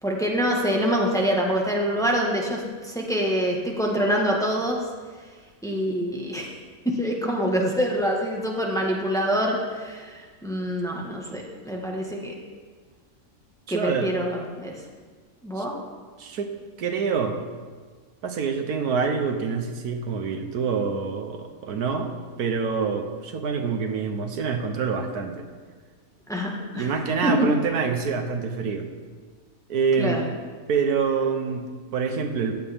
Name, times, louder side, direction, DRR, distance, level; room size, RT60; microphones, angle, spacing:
voice 1, 0.0-4.8 5.6-6.6 6.8-12.3 13.7-14.7 15.4-15.7 26.3-26.9 27.2-27.5 30.0-30.2, equal, ahead, -1 dB, 1.5 m, -25 dB
voice 2, 13.7-14.1 15.6-15.7 16.2-16.5 16.8-17.4 18.2-22.1 22.4-25.4 26.7-28.9 29.7-30.2 30.7-32.6, right 5 dB, 90° right, 6 dB, 1.5 m, -26 dB
15.5 x 10.5 x 3.6 m, 1.5 s
omnidirectional pair, 1.6 m